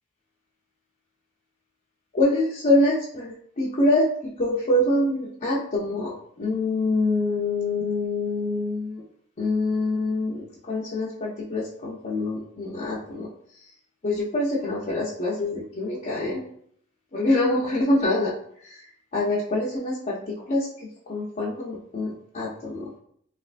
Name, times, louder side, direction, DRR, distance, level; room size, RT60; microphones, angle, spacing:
voice 1, 2.1-4.1 4.4-6.1 6.4-9.0 9.4-13.3 14.0-16.4 17.1-18.3 18.6-18.8 19.1-20.2 20.5-22.9, left 2 dB, 35° left, -7 dB, 0.6 m, -25 dB
3.3 x 2.9 x 2.4 m, 0.64 s
head